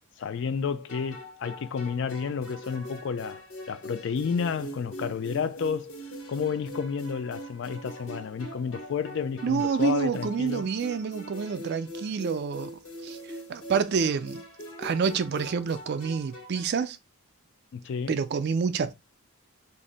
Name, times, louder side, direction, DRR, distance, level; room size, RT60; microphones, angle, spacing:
voice 1, 0.2-10.7 17.7-18.1, left 6 dB, 55° left, 0.3 m, -31 dB
sound 1, 0.9-16.8, equal, 75° left, 1.0 m, -42 dB
voice 2, 9.4-12.7 13.0-13.2 13.5-14.4 14.8-17.0 18.1-18.9, right 6 dB, 50° right, 0.3 m, -28 dB
2.6 x 2.0 x 3.8 m
head